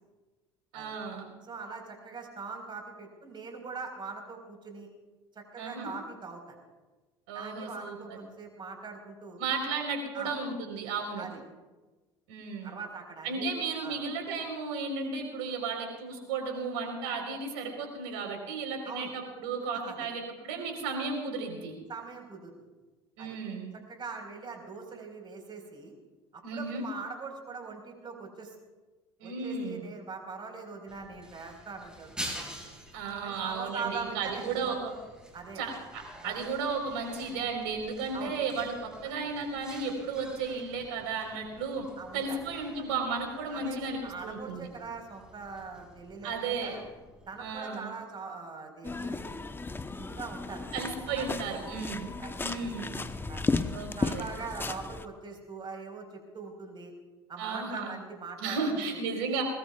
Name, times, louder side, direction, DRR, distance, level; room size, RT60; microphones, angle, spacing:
voice 1, 0.7-1.3 5.6-5.9 7.3-8.2 9.4-11.3 12.3-12.8 13.2-21.7 23.2-23.7 26.4-26.8 29.2-29.8 32.9-34.9 35.6-38.7 39.0-41.9 42.1-44.7 46.2-46.8 47.4-47.9 50.7-52.1 52.4-52.9 53.7-54.3 57.4-57.9 58.4-59.4, right 4 dB, 70° right, 2 dB, 4.2 m, -34 dB
voice 2, 1.4-4.9 5.3-6.6 7.3-9.4 10.1-10.3 11.2-11.4 12.6-13.5 13.8-14.0 18.8-19.1 19.8-20.0 21.9-22.5 23.2-23.4 23.9-25.9 26.3-28.5 29.2-32.6 33.2-34.8 35.3-35.6 36.2-36.4 38.1-38.4 42.0-42.4 43.5-46.8 47.3-49.4 50.0-50.8 51.1-51.6 52.2-53.0 53.3-53.5 54.0-56.9 57.3-59.0, right 4 dB, 35° right, 3 dB, 4.6 m, -42 dB
sound 1, 30.9-47.5, right 1 dB, 5° right, 4.9 m, -48 dB
sound 2, 48.8-55.1, left 3 dB, 15° left, 0.9 m, -34 dB
21.0 x 21.0 x 2.4 m, 1.2 s
hypercardioid pair, 65°, 14 cm